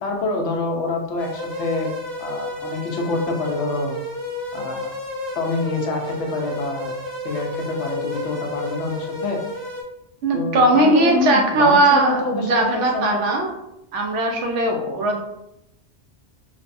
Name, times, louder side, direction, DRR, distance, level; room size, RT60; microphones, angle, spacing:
voice 1, 0.0-1.9 2.2-3.9 4.5-4.9 5.3-6.9 7.2-9.4 10.3-13.2, left 3 dB, 75° left, 1 dB, 0.9 m, -26 dB
Single Mosquito Buzz, 1.2-9.8, left 1 dB, 45° right, 0.6 m, -31 dB
voice 2, 10.2-13.5 13.9-15.2, right 2 dB, 90° right, 2 dB, 0.9 m, -18 dB
3.2 x 2.0 x 2.5 m, 0.87 s
omnidirectional pair, 1.2 m